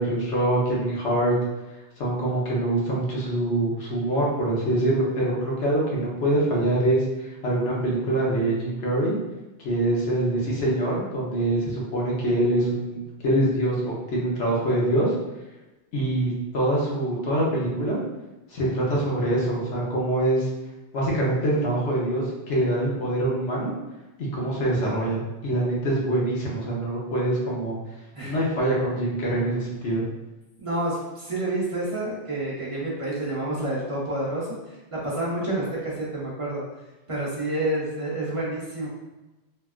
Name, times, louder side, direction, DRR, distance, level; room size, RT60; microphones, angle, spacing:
voice 1, 0.0-1.3 2.0-9.2 9.6-15.1 15.9-18.0 18.5-20.5 20.9-23.7 24.2-27.8 28.2-30.0, right 1 dB, 90° left, -5 dB, 1.2 m, -24 dB
voice 2, 30.6-36.6 37.1-38.9, right 1 dB, 35° right, -6 dB, 0.7 m, -29 dB
3.3 x 2.3 x 2.4 m, 1.1 s
omnidirectional pair, 1.1 m